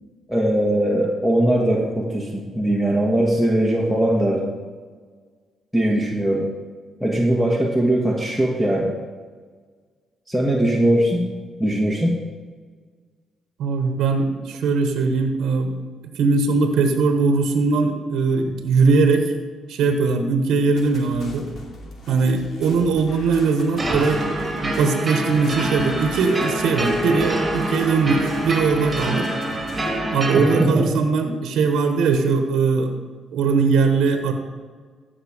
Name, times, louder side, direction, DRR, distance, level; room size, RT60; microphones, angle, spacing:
voice 1, 0.3-4.5 5.7-6.5 7.0-8.9 10.3-11.2 11.6-12.1 30.3-30.9, right 1 dB, ahead, -2 dB, 1.6 m, -20 dB
voice 2, 13.6-15.7 16.1-19.3 19.7-21.5 22.1-29.3 30.1-32.9 33.3-34.3, right 4 dB, 80° right, 6 dB, 1.1 m, -20 dB
sound 1, 20.8-30.0, left 1 dB, 60° left, 2.9 m, -40 dB
sound 2, 23.1-29.6, left 2 dB, 80° left, 2.1 m, -42 dB
sound 3, 23.8-30.6, right 1 dB, 20° right, 2.4 m, -26 dB
14.5 x 5.9 x 5.0 m, 1.5 s
cardioid pair, 90°, 0 cm